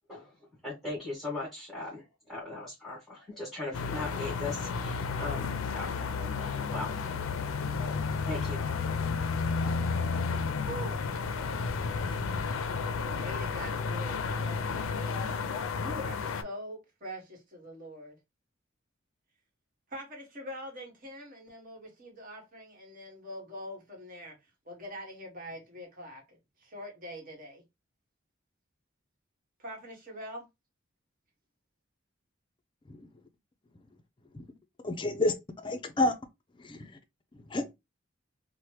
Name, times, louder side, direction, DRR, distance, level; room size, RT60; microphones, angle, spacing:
voice 1, 0.6-2.0 2.3-5.9 6.4-7.0 8.2-8.6, left 2 dB, ahead, 1.4 m, -39 dB
sound 1, 3.7-16.4, left 5 dB, 90° left, 0.4 m, -32 dB
voice 2, 12.9-18.2 19.9-24.4 24.6-27.6 29.6-30.4, equal, 45° right, 1.2 m, -44 dB
voice 3, 34.8-35.3 35.6-36.1 36.6-36.8 37.5-37.7, left 2 dB, 25° left, 0.4 m, -29 dB
2.9 x 2.1 x 3.2 m
head